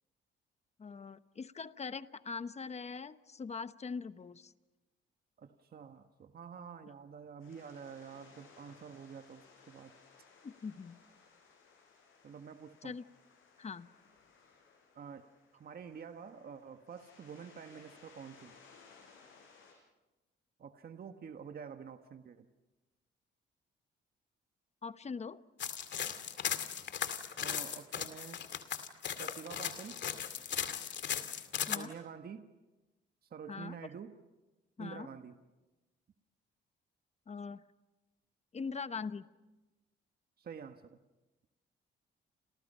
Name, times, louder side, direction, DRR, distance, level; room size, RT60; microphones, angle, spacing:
voice 1, 0.8-4.5 10.4-11.0 12.8-13.0 13.6-13.9 24.8-25.4 31.7-31.9 33.5-33.8 34.8-35.1 37.3-37.6 38.5-39.2, left 5 dB, 35° left, 12 dB, 1.0 m, -42 dB
voice 2, 5.4-9.9 12.2-13.0 14.9-15.3 15.5-18.6 20.6-22.5 27.4-28.4 29.2-30.0 31.6-32.5 33.2-34.1 34.8-35.4 40.4-41.0, right 7 dB, 50° right, 7 dB, 1.5 m, -48 dB
sound 1, 7.4-19.7, left 5 dB, 85° left, 7.4 m, -62 dB
sound 2, 25.6-31.8, left 9 dB, 65° left, 2.3 m, -37 dB
30.0 x 29.0 x 5.6 m, 1.1 s
cardioid pair, 90°, 20 cm